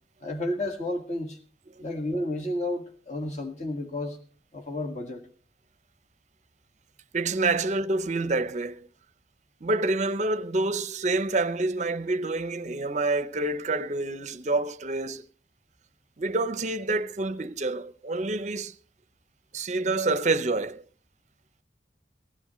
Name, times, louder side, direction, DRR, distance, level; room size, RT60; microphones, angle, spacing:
voice 1, 0.2-1.4 1.8-4.2 4.5-5.2, left 1 dB, 40° left, 1.8 m, -31 dB
voice 2, 7.1-8.9 9.6-15.2 16.2-18.7 19.5-20.8, right 2 dB, 40° right, 0.6 m, -27 dB
19.5 x 14.5 x 3.1 m
head